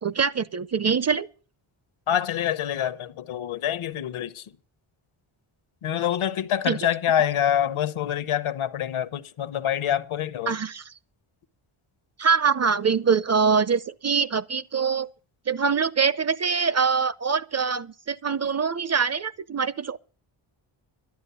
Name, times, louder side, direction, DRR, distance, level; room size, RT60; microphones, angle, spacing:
voice 1, 0.0-1.3 6.7-6.8 10.5-10.8 12.2-15.1 15.5-20.0, right 6 dB, 35° right, 0.5 m, -24 dB
voice 2, 2.1-4.5 5.8-10.6, left 10 dB, 75° left, 0.9 m, -26 dB
12.0 x 9.1 x 6.8 m
cardioid pair, 70°, 50 cm